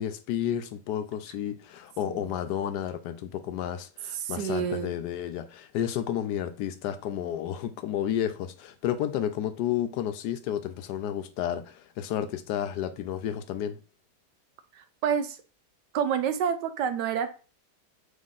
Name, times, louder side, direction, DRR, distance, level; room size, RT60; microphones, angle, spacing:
voice 1, 0.0-13.8, left 10 dB, 80° left, 1.1 m, -31 dB
voice 2, 4.1-4.9 14.7-15.4 15.9-17.4, right 8 dB, 85° right, 1.3 m, -29 dB
5.6 x 3.5 x 2.4 m
omnidirectional pair, 1.8 m